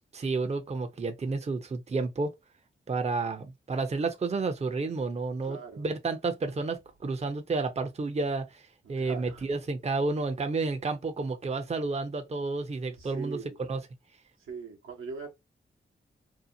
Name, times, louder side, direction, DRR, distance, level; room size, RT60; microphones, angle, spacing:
voice 1, 0.1-2.3 2.9-13.4 13.7-13.8, right 3 dB, 30° right, 0.6 m, -31 dB
voice 2, 5.4-5.9 9.0-9.6 13.0-13.6 14.4-15.3, right 5 dB, 80° right, 0.9 m, -41 dB
2.7 x 2.1 x 2.6 m
supercardioid pair, 40°, 21 cm